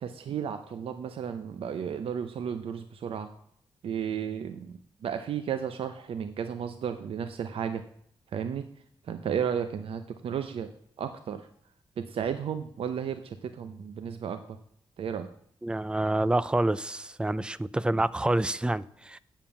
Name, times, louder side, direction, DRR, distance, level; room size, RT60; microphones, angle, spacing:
voice 1, 0.0-3.3 3.8-7.8 8.3-8.6 9.0-10.7 11.0-11.5 12.0-14.6 15.0-15.3, right 8 dB, 90° right, 0.7 m, -33 dB
voice 2, 15.6-19.2, right 1 dB, 10° right, 0.4 m, -27 dB
9.1 x 7.3 x 6.9 m
wide cardioid pair, 150°, 9 cm